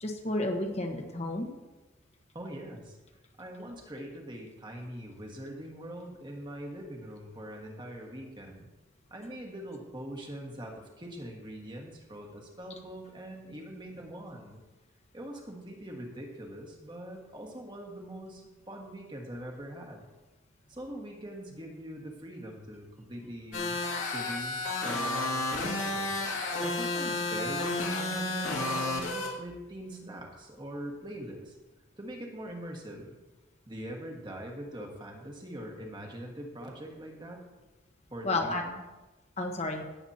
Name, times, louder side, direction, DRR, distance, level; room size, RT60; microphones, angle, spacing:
voice 1, 0.0-1.5 38.2-38.6 39.4-39.8, left 2 dB, 30° left, 3 dB, 1.2 m, -31 dB
voice 2, 2.3-3.0 3.4-8.7 9.1-14.6 15.1-20.1 20.7-26.1 26.6-31.6 32.0-33.1 33.7-37.4 38.1-38.8, right 1 dB, 20° right, 0 dB, 1.6 m, -42 dB
sound 1, 23.5-29.3, left 2 dB, 80° left, 2.3 m, -31 dB
18.0 x 8.0 x 2.8 m, 1.1 s
head